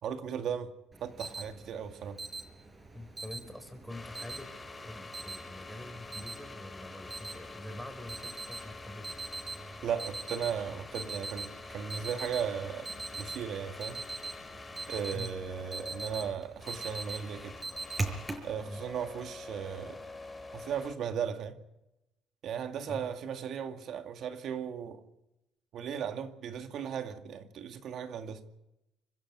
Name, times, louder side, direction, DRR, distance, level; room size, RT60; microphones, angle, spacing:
voice 1, 0.0-0.7 1.0-2.2 9.8-14.0 14.9-17.6 18.4-20.0 20.5-21.6 22.4-25.0 25.7-28.4, right 8 dB, 60° right, 2.2 m, -36 dB
Alarm, 0.9-18.5, right 3 dB, 25° right, 5.5 m, -42 dB
voice 2, 2.9-4.5 4.8-9.1 15.1-15.3 18.6-18.8 22.9-23.0, left 1 dB, ahead, 5.1 m, -45 dB
sound 1, 3.9-20.9, left 3 dB, 20° left, 3.9 m, -47 dB
26.0 x 12.0 x 9.6 m
supercardioid pair, 90°, 0 cm